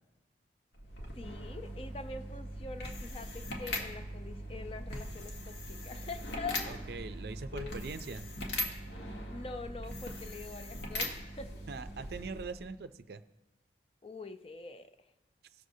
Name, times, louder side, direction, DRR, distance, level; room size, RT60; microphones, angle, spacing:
sound 1, 0.7-12.7, equal, 80° left, 1.4 m, -40 dB
voice 1, 1.2-7.1 7.5-7.8 9.3-11.5 12.2-12.4 14.0-14.9, left 3 dB, 30° left, 9 dB, 0.5 m, -44 dB
voice 2, 6.7-8.3 11.7-13.2, right 4 dB, 60° right, 11 dB, 0.4 m, -42 dB
17.5 x 6.4 x 2.7 m, 1.1 s
head